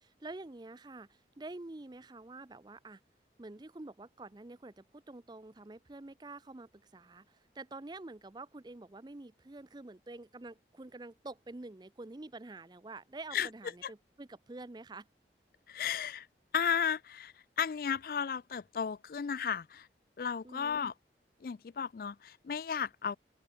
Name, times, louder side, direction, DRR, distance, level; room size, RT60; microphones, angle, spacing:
voice 1, 0.0-3.0 3.4-15.1 20.4-20.9, right 2 dB, 25° right, 0.5 m, -48 dB
voice 2, 15.7-16.3 16.5-19.9 20.2-20.9 21.4-23.2, left 7 dB, 50° left, 0.4 m, -34 dB
open air
head